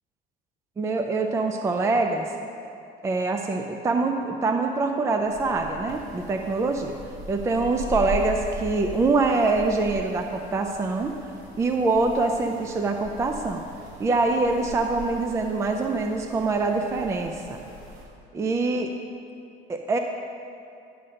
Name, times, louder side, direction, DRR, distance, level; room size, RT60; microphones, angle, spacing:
voice 1, 0.8-2.3 3.0-7.0 7.3-11.2 11.6-13.6 14.0-17.6 18.3-18.9 19.7-20.0, right 3 dB, 15° right, 4 dB, 0.4 m, -24 dB
sound 1, 5.3-18.0, equal, 75° right, 2.5 m, -40 dB
10.5 x 5.9 x 6.4 m, 2.6 s
cardioid pair, 165°, 19 cm